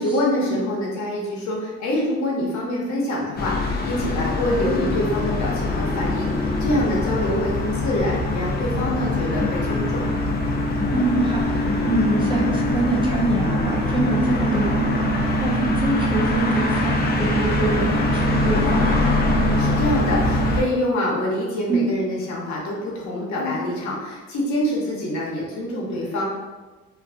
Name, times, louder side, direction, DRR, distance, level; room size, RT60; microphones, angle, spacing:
voice 1, 0.0-10.1 19.2-26.3, left 1 dB, 65° left, -3 dB, 0.8 m, -25 dB
sound 1, 3.4-20.6, left 1 dB, 35° left, 0.4 m, -23 dB
voice 2, 4.5-4.8 10.9-14.9 15.4-18.9 21.7-21.8 23.4-23.6, right 1 dB, 15° right, -3 dB, 0.6 m, -25 dB
2.6 x 2.4 x 2.4 m, 1.3 s
cardioid pair, 90°, 30 cm